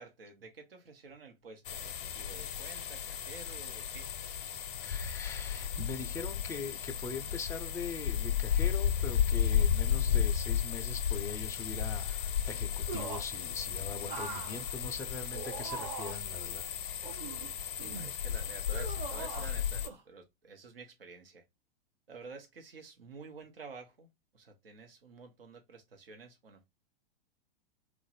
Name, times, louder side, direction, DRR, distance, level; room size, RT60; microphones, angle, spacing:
voice 1, 0.0-4.1 17.9-21.4 22.1-24.1 24.3-26.7, right 4 dB, 75° right, 1.0 m, -50 dB
sound 1, 1.6-19.9, left 9 dB, 60° left, 0.6 m, -34 dB
voice 2, 4.8-16.7 17.1-17.2, left 4 dB, 10° left, 0.4 m, -42 dB
sound 2, 12.9-13.4 14.0-16.4 17.0-18.1 18.7-19.6 19.8-20.0, right 6 dB, 30° right, 0.8 m, -42 dB
3.1 x 2.5 x 4.0 m
figure-of-eight pair, 100°, 29 cm